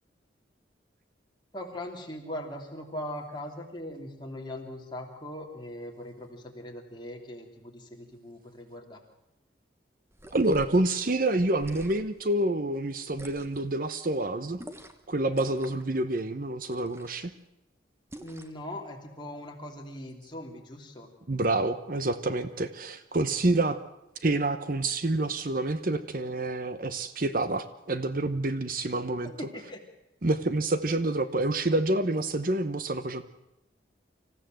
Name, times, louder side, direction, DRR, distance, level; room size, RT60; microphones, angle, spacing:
voice 1, 1.5-9.0 18.2-21.1 29.2-29.8, left 1 dB, 25° left, 1 dB, 3.1 m, -40 dB
sound 1, 10.1-10.8 11.5-12.2 13.1-13.7 14.6-15.1 15.3-15.9 16.7-17.3 18.1-18.6, right 1 dB, 15° right, 1.1 m, -47 dB
voice 2, 10.3-14.6 15.1-17.3 21.3-23.8 24.2-29.3 30.2-33.2, right 2 dB, 45° right, 12 dB, 0.9 m, -28 dB
26.0 x 15.0 x 7.7 m, 0.89 s
head